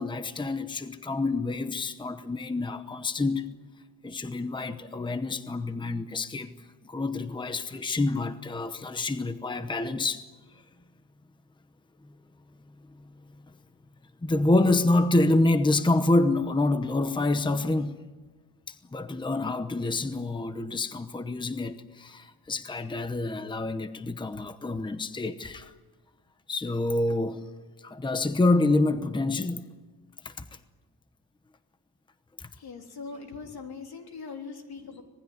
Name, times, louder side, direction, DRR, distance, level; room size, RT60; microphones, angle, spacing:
voice 1, 0.0-3.5 4.0-6.5 6.8-10.2 14.2-18.0 18.7-25.7 26.5-27.5 27.8-29.6 30.2-30.4 32.4-32.5, left 2 dB, 10° left, 0.9 m, -27 dB
voice 2, 32.5-35.0, left 4 dB, 75° left, 3.6 m, -41 dB
26.5 x 19.5 x 9.6 m
wide cardioid pair, 160°, 38 cm